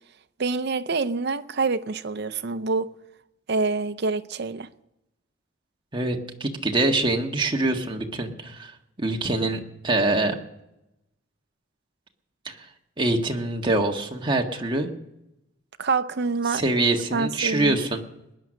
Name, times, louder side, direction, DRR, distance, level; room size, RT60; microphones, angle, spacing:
voice 1, 0.4-2.9 3.5-4.7 15.8-16.6 17.1-17.8, right 4 dB, 55° right, 0.7 m, -26 dB
voice 2, 5.9-8.7 9.0-10.4 12.4-12.7 13.0-14.9 16.5-18.0, right 2 dB, 25° right, 1.5 m, -24 dB
19.5 x 11.0 x 6.4 m
head